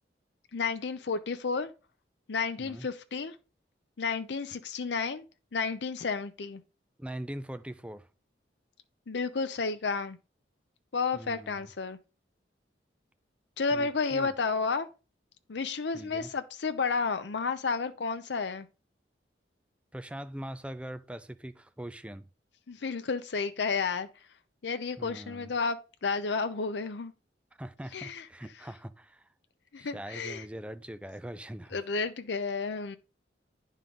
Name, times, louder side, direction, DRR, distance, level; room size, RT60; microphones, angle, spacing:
voice 1, 0.5-1.7 2.3-3.3 4.0-5.2 5.5-6.6 9.1-10.2 10.9-12.0 13.6-14.9 15.5-18.7 22.7-24.1 24.6-27.1 27.9-28.2 29.7-30.4 31.7-33.0, left 4 dB, 70° left, 0.6 m, -31 dB
voice 2, 7.0-8.1 11.1-11.7 13.7-14.3 15.9-16.3 19.9-22.2 25.0-25.5 27.6-29.3 29.8-31.8, right 1 dB, 5° right, 0.4 m, -42 dB
9.3 x 3.7 x 5.2 m
head